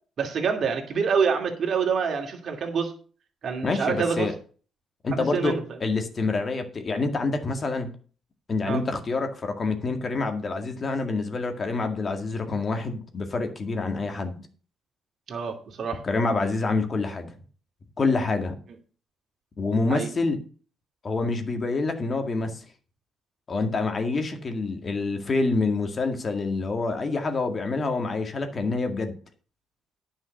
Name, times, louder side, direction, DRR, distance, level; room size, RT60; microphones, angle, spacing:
voice 1, 0.2-2.9 3.4-4.3 5.1-5.6 8.6-8.8 15.3-16.0 19.9-20.1, right 6 dB, 55° right, 2.5 m, -26 dB
voice 2, 3.6-4.3 5.0-7.9 8.5-14.4 16.0-17.3 18.0-18.6 19.6-20.4 21.0-22.6 23.5-29.1, left 3 dB, 40° left, 2.0 m, -27 dB
9.9 x 5.6 x 6.4 m
cardioid pair, 90°, 0 cm